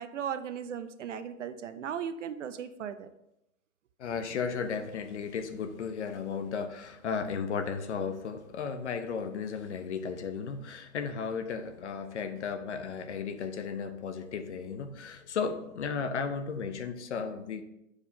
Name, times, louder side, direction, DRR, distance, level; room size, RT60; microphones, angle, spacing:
voice 1, 0.0-3.1, right 8 dB, 60° right, 11 dB, 0.6 m, -37 dB
voice 2, 4.0-17.6, left 6 dB, 55° left, 8 dB, 0.8 m, -35 dB
9.0 x 4.9 x 2.8 m, 0.84 s
hypercardioid pair, 160°, 41 cm